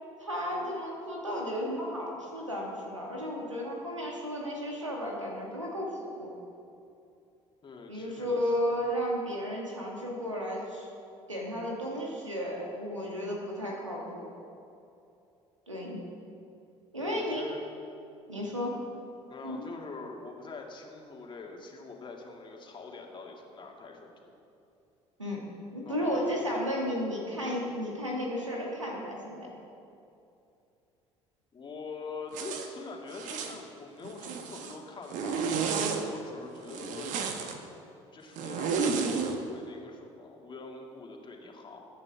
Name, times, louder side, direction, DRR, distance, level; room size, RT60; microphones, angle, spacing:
voice 1, 0.2-6.3 7.9-10.9 11.3-14.3 15.7-16.0 16.9-17.4 18.3-18.7 19.4-19.7 25.2-25.4 25.7-29.5, equal, 90° right, -2 dB, 2.0 m, -33 dB
voice 2, 7.6-8.8 17.0-17.7 18.5-18.7 19.3-24.3 25.8-26.7 31.5-37.2 38.1-41.9, left 3 dB, 30° left, 0 dB, 2.4 m, -44 dB
Zipper (clothing), 32.3-32.7 33.1-33.6 34.0-34.8 35.1-36.0 36.7-37.5 38.4-39.3, right 5 dB, 55° right, 1.3 m, -31 dB
21.5 x 9.4 x 3.6 m, 2.7 s
figure-of-eight pair, 55°, 15 cm